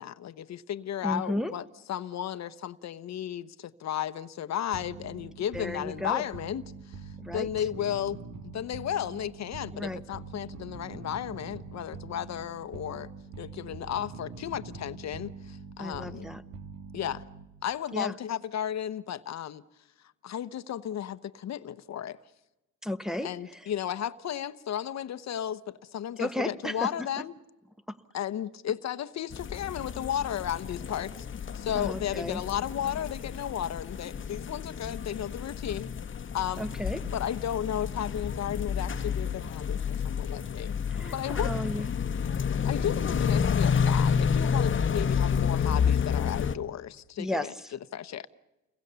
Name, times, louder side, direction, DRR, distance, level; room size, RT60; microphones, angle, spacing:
voice 1, 0.0-6.6 7.3-8.3 8.5-13.1 13.4-16.3 16.9-17.2 17.6-19.6 20.2-22.2 23.2-27.3 28.1-31.3 31.5-35.9 36.3-36.7 37.1-40.7 41.1-41.5 42.6-47.5 47.9-48.3, left 10 dB, 60° left, 1.0 m, -34 dB
voice 2, 1.0-1.5 5.5-6.2 7.2-7.6 9.7-10.0 15.8-16.4 17.9-18.2 22.8-23.7 26.2-27.1 27.9-28.0 31.7-32.4 36.6-37.0 40.9-41.9 47.2-47.7, left 1 dB, ahead, 1.2 m, -34 dB
sound 1, 4.7-17.6, right 5 dB, 85° right, 2.5 m, -44 dB
sound 2, 29.3-46.6, left 7 dB, 40° left, 1.1 m, -30 dB
29.5 x 22.0 x 6.9 m
cardioid pair, 90°, 30 cm